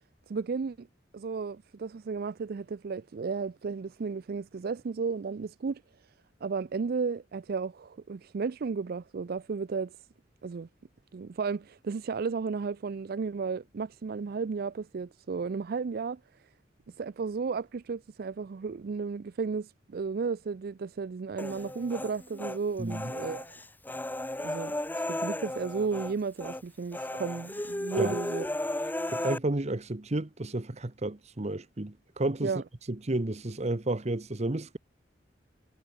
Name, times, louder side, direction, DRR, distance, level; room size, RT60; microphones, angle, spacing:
voice 1, 0.3-0.9 1.1-5.8 6.4-10.0 10.4-10.7 11.1-16.2 17.0-23.5 24.4-28.5 32.4-32.6, right 5 dB, 55° right, 0.4 m, -33 dB
Human voice, 21.4-22.6 22.9-26.1 26.4-26.6 26.9-29.4, left 1 dB, 10° left, 1.3 m, -34 dB
voice 2, 22.8-23.1 28.0-28.2 29.1-32.5 32.9-34.8, right 2 dB, 35° right, 1.1 m, -32 dB
head